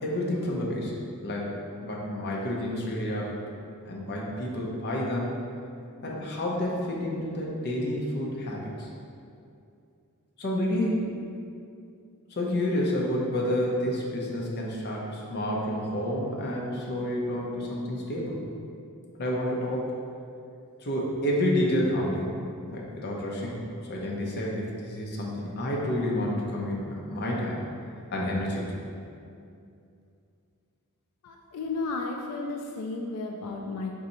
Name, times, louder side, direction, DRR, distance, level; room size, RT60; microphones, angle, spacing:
voice 1, 0.0-0.9 1.2-1.5 1.8-3.4 3.9-5.4 6.0-8.9 10.4-11.0 12.3-18.4 19.2-19.9 20.8-22.3 22.7-23.6 23.9-27.6 28.1-28.7, left 1 dB, 50° left, -3 dB, 0.7 m, -29 dB
voice 2, 31.2-33.9, left 3 dB, 90° left, 1 dB, 0.4 m, -33 dB
4.0 x 2.7 x 4.2 m, 2.5 s
head